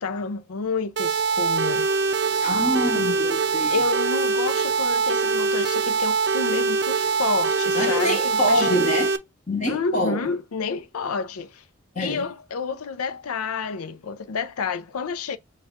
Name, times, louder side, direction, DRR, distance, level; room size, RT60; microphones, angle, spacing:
voice 1, 0.0-1.9 3.7-8.7 9.7-11.6 12.0-15.4, left 5 dB, 90° left, 0.6 m, -29 dB
sound 1, 1.0-9.2, right 4 dB, 50° right, 0.4 m, -23 dB
voice 2, 2.3-3.8 7.7-9.1 9.5-10.3 11.9-12.2, left 1 dB, 35° left, 0.8 m, -25 dB
6.5 x 2.3 x 3.6 m
head